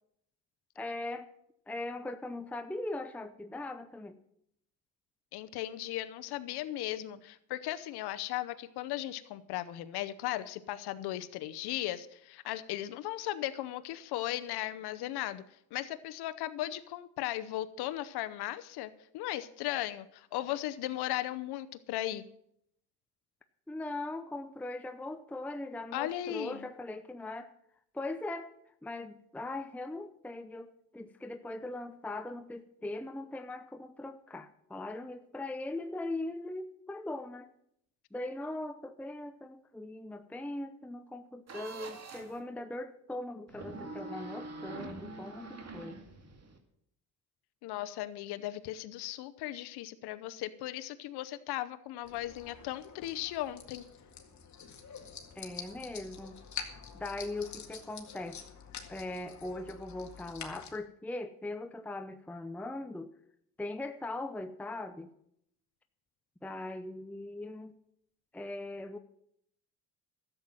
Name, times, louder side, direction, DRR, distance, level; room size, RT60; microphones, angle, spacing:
voice 1, 0.8-1.3 1.7-4.2 23.7-27.5 27.9-28.5 28.8-37.5 38.1-46.0 55.4-56.4 56.9-58.4 58.9-63.1 63.6-65.1 66.4-67.8 68.3-69.0, left 2 dB, 5° left, 9 dB, 0.6 m, -40 dB
voice 2, 5.3-15.4 15.7-22.2 25.9-26.6 47.6-53.9, left 14 dB, 90° left, 12 dB, 0.8 m, -37 dB
sound 1, 41.5-42.4 43.5-46.6, right 2 dB, 45° right, 2.3 m, -44 dB
sound 2, 52.0-60.8, left 7 dB, 50° left, 2.0 m, -47 dB
12.5 x 7.8 x 7.5 m, 0.73 s
cardioid pair, 100°, 38 cm